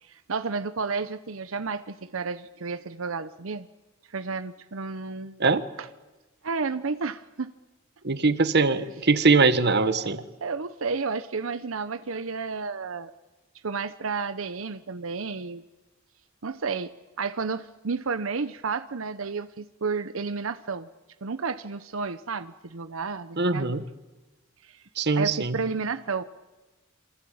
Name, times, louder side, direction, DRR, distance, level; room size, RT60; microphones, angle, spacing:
voice 1, 0.1-3.7 4.1-5.5 5.8-5.9 6.4-7.5 9.9-10.1 10.4-13.1 13.6-15.6 16.4-20.9 21.2-23.7 24.6-24.8 25.1-26.2, right 4 dB, 90° right, 12 dB, 0.9 m, -31 dB
voice 2, 8.0-10.2 23.4-23.8 25.0-25.5, right 3 dB, 55° right, 12 dB, 1.4 m, -22 dB
27.0 x 25.5 x 8.7 m, 1.2 s
head